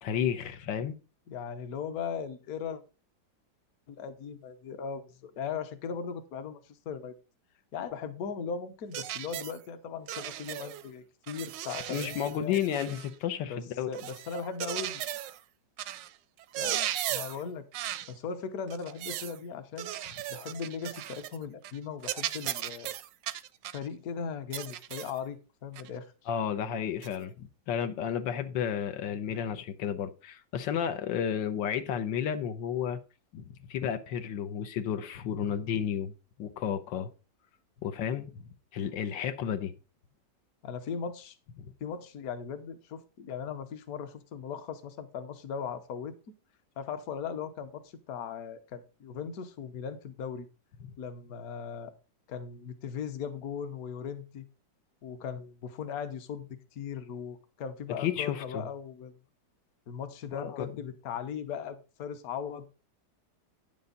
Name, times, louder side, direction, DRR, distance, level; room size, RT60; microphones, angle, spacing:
voice 1, 0.0-1.0 11.9-13.9 26.3-33.0 33.3-33.4 33.7-36.1 36.4-37.1 37.8-38.3 38.7-39.7 58.0-58.7 60.3-60.7, left 8 dB, 85° left, 8 dB, 1.5 m, -32 dB
voice 2, 1.3-2.8 3.9-7.1 7.7-12.9 13.5-15.0 16.6-19.9 20.3-22.9 23.7-26.1 40.6-41.4 41.8-46.2 46.8-50.5 51.0-51.9 52.3-54.4 55.0-59.1 59.9-62.7, left 6 dB, 60° left, 9 dB, 1.3 m, -38 dB
sound 1, 8.9-9.6 10.1-10.9 11.3-13.1 13.9-15.4 15.8-16.1 16.4-17.4 17.7-18.1 18.7-19.4 19.8-21.4 21.6-21.8 22.0-23.9 24.5-25.2 25.8-25.9 27.0-27.2, right 13 dB, 80° right, 1.3 m, -36 dB
9.5 x 7.1 x 3.9 m, 0.32 s
omnidirectional pair, 2.0 m